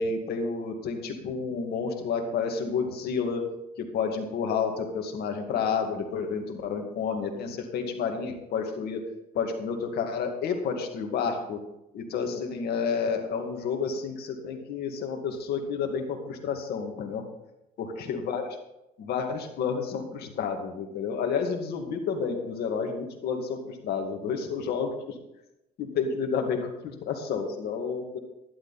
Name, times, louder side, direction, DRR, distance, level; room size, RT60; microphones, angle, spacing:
voice 1, 0.0-3.4 3.8-9.0 9.3-11.6 11.9-17.2 17.8-18.6 19.0-25.1 25.8-28.2, left 5 dB, 70° left, 4 dB, 2.2 m, -30 dB
12.0 x 11.5 x 4.2 m, 0.90 s
cardioid pair, 110°, 17 cm